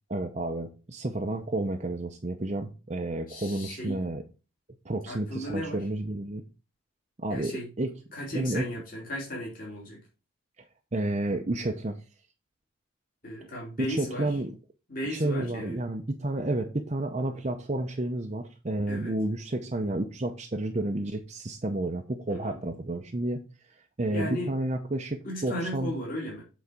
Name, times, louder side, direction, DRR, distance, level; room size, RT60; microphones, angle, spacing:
voice 1, 0.1-4.2 4.8-6.4 7.2-7.9 8.3-8.7 10.9-12.0 13.8-14.5 15.1-23.4 24.0-25.9, right 2 dB, 35° right, 3 dB, 0.7 m, -31 dB
voice 2, 3.3-4.0 5.1-5.9 7.3-7.7 8.1-10.0 13.2-14.4 14.9-15.8 18.9-19.1 22.3-22.6 24.1-24.5 25.2-26.4, equal, 45° left, -3 dB, 3.0 m, -35 dB
8.2 x 4.1 x 4.9 m, 0.32 s
head